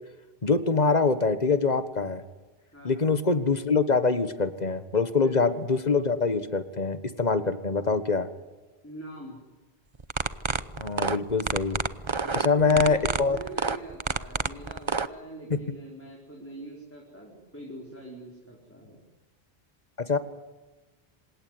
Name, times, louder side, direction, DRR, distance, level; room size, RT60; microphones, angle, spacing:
voice 1, 0.4-2.2 2.8-8.3 10.8-11.8 12.3-13.4 20.1-20.2, left 4 dB, 45° left, 12 dB, 1.5 m, -24 dB
voice 2, 2.7-3.1 5.2-5.6 8.8-9.4 12.2-19.0, right 1 dB, 10° left, -2 dB, 4.8 m, -44 dB
sound 1, 10.0-15.1, right 4 dB, 30° right, 0.8 m, -28 dB
26.5 x 18.0 x 9.6 m, 1.2 s
omnidirectional pair, 1.0 m